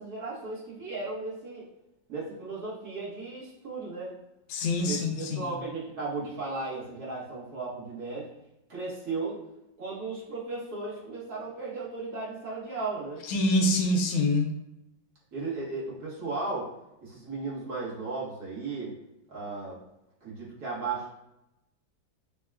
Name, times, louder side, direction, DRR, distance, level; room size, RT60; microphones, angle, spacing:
voice 1, 0.0-1.6 2.1-4.2 4.9-8.3 8.7-9.4 9.8-13.2 15.3-16.7 17.0-18.9 19.3-19.8 20.2-21.1, right 3 dB, 55° right, -7 dB, 1.5 m, -35 dB
voice 2, 4.5-5.5 13.3-14.5, left 1 dB, 90° left, 3 dB, 1.4 m, -25 dB
6.3 x 2.2 x 2.3 m, 0.89 s
omnidirectional pair, 2.1 m